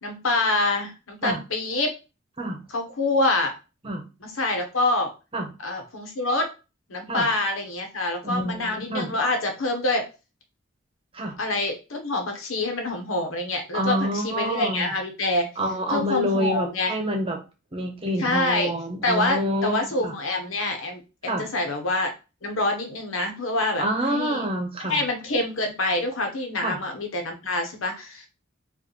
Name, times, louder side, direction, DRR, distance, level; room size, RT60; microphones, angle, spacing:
voice 1, 0.0-1.9 2.7-3.5 4.2-5.1 5.6-6.5 6.9-10.1 11.4-15.5 15.9-16.9 18.2-18.7 19.0-22.1 22.4-23.8 24.1-24.4 24.9-28.3, left 2 dB, 85° left, 5 dB, 1.1 m, -26 dB
voice 2, 8.2-9.1 11.1-11.4 13.7-14.9 15.6-17.4 17.7-20.1 21.3-21.5 23.8-25.0 26.6-26.8, equal, 30° right, 2 dB, 1.0 m, -27 dB
4.8 x 2.6 x 3.2 m, 0.30 s
head